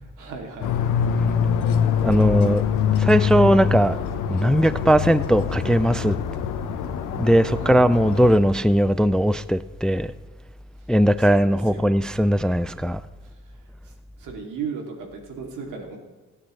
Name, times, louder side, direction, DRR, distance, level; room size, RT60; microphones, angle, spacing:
voice 1, 0.2-0.7 7.5-7.8 10.8-10.9 11.4-12.0 13.2-16.0, right 5 dB, 85° right, 2.8 m, -37 dB
sound 1, 0.6-8.4, left 7 dB, 90° left, 1.2 m, -24 dB
voice 2, 2.0-2.6 3.0-4.0 4.3-6.2 7.2-10.1 10.9-13.0, equal, ahead, 0.3 m, -19 dB
23.5 x 8.9 x 3.3 m
cardioid pair, 90°, 30 cm